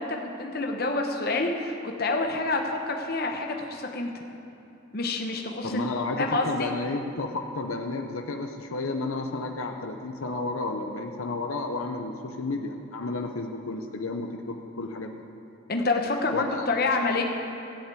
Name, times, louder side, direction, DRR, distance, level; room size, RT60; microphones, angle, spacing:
voice 1, 0.0-4.1 4.9-5.8 6.2-6.7 15.7-17.2, left 3 dB, 45° left, 3 dB, 1.1 m, -27 dB
voice 2, 5.6-15.2 16.3-16.7, left 3 dB, 85° left, 4 dB, 0.8 m, -32 dB
14.0 x 7.3 x 8.4 m, 2.9 s
head